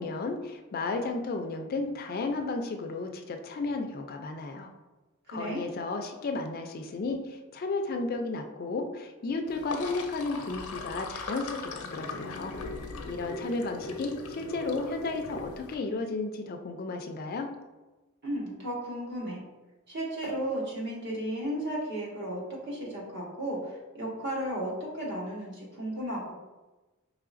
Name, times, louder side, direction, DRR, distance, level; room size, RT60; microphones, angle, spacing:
voice 1, 0.0-4.7 5.3-12.5 13.1-17.5, left 3 dB, 40° left, 4 dB, 0.3 m, -33 dB
voice 2, 5.3-5.6 18.2-19.4 19.9-26.3, right 1 dB, 50° right, -3 dB, 1.1 m, -34 dB
Sink (filling or washing), 9.5-15.7, left 3 dB, 90° left, 0.6 m, -39 dB
4.7 x 3.1 x 2.5 m, 1.1 s
head